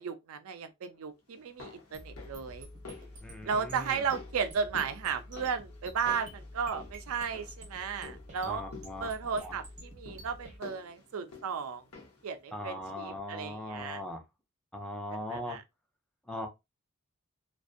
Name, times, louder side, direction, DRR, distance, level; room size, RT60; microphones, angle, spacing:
voice 1, 0.0-2.7 3.4-8.6 9.0-11.8 12.2-14.0 15.1-15.6, right 6 dB, 80° right, 0.4 m, -35 dB
sound 1, 1.3-12.3 12.6-12.7, left 4 dB, 90° left, 0.8 m, -50 dB
sound 2, 1.9-10.6, equal, 35° right, 0.8 m, -48 dB
voice 2, 3.2-4.1 8.4-9.1 9.4-9.6 12.5-14.2 14.7-15.6 16.3-16.5, left 1 dB, 5° left, 0.5 m, -39 dB
2.5 x 2.2 x 2.4 m
head